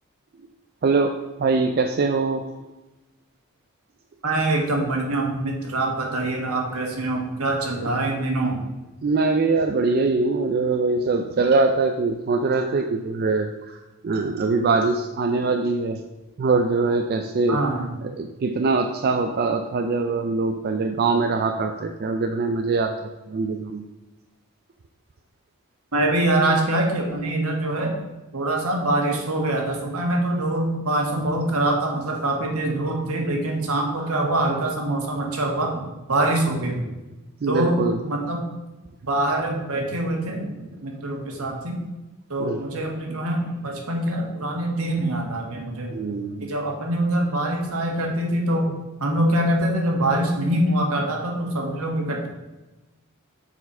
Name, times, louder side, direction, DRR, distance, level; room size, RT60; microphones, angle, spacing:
voice 1, 0.8-2.4 9.0-13.8 14.0-16.0 16.4-17.6 18.0-23.8 37.4-38.0 42.4-42.6 45.9-46.5, right 3 dB, 45° right, 6 dB, 0.4 m, -23 dB
voice 2, 4.2-8.6 17.5-17.9 25.9-27.9 28.3-36.8 37.5-38.4 39.0-40.5 40.8-41.8 42.3-45.9 46.4-48.7 49.0-52.3, right 1 dB, 80° right, 1 dB, 1.5 m, -24 dB
7.0 x 4.1 x 5.4 m, 1.1 s
head